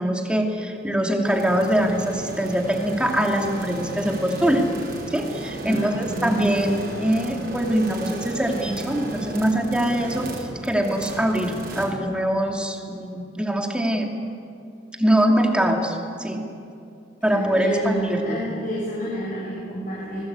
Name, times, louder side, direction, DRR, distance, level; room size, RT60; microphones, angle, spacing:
voice 1, 0.0-4.7 5.1-14.1 15.0-16.4 17.2-18.4, right 1 dB, 5° right, 2 dB, 2.5 m, -23 dB
sound 1, 1.2-11.9, right 2 dB, 55° right, 5.2 m, -35 dB
voice 2, 5.6-6.5 17.2-20.2, right 1 dB, 45° left, -7 dB, 6.7 m, -28 dB
26.5 x 21.0 x 8.8 m, 2.6 s
head